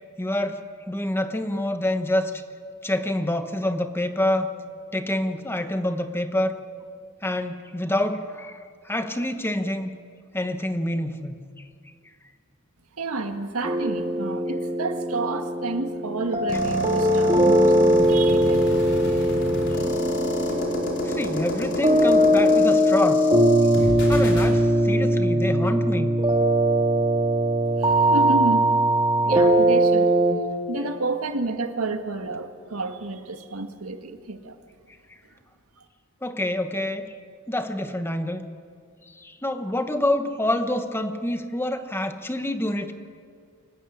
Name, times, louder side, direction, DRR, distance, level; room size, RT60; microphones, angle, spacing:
voice 1, 0.2-0.6 0.9-2.3 2.8-4.5 4.9-6.6 7.2-9.9 10.3-11.4 21.0-23.3 24.1-26.2 36.2-37.1 37.5-38.4 39.2-42.9, left 1 dB, 10° left, 7 dB, 1.1 m, -27 dB
voice 2, 13.0-18.7 27.8-28.7 28.9-30.1 30.7-34.6, right 2 dB, 85° right, 6 dB, 1.7 m, -30 dB
sound 1, 13.6-30.3, right 1 dB, 25° right, 2.0 m, -20 dB
sound 2, 16.5-24.5, equal, 55° left, 4.9 m, -30 dB
25.0 x 15.5 x 10.0 m, 2.1 s
head